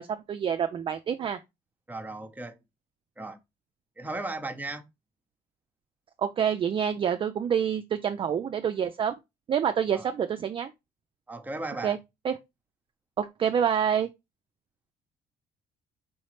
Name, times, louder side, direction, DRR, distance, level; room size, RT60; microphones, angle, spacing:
voice 1, 0.0-1.4 6.2-9.1 9.5-10.7 11.8-12.0 12.2-12.3 13.2-14.1, right 8 dB, 30° right, 0.3 m, -27 dB
voice 2, 1.9-2.6 3.2-3.4 4.0-4.9 9.9-10.1 11.3-11.9, right 2 dB, 10° right, 0.7 m, -36 dB
4.8 x 3.1 x 3.0 m
cardioid pair, 110°, 17 cm